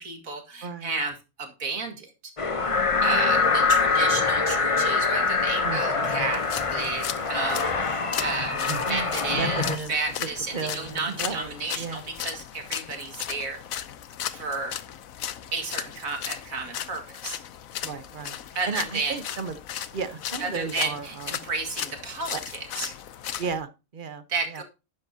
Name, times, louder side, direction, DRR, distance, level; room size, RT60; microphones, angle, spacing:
voice 1, 0.0-2.3 3.0-9.6 9.9-13.6 14.3-14.8 15.5-17.4 18.6-19.2 20.4-22.9 24.3-24.6, right 4 dB, 75° right, 4 dB, 2.5 m, -32 dB
voice 2, 0.6-0.9 5.6-6.2 8.7-9.9 10.2-12.0 17.8-18.4 18.7-19.6 19.9-21.4 22.3-22.4 23.4-24.6, right 5 dB, 40° right, 11 dB, 1.1 m, -34 dB
sound 1, 2.4-9.8, left 4 dB, 30° left, 0.8 m, -24 dB
sound 2, 6.3-23.6, left 10 dB, 75° left, 1.2 m, -36 dB
12.0 x 10.0 x 2.8 m, 0.28 s
omnidirectional pair, 1.4 m